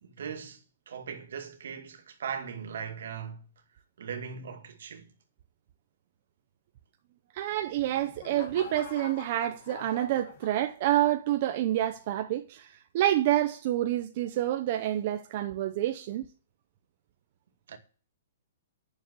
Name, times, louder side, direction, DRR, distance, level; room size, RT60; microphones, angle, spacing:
voice 1, 0.0-3.4 4.0-5.1 17.7-17.8, right 7 dB, 65° right, 2.2 m, -39 dB
voice 2, 7.3-16.3, right 13 dB, 35° right, 0.7 m, -28 dB
sound 1, 7.5-11.1 11.6-12.0, left 7 dB, 40° left, 1.7 m, -46 dB
10.0 x 6.9 x 8.2 m
hypercardioid pair, 175°, 0 cm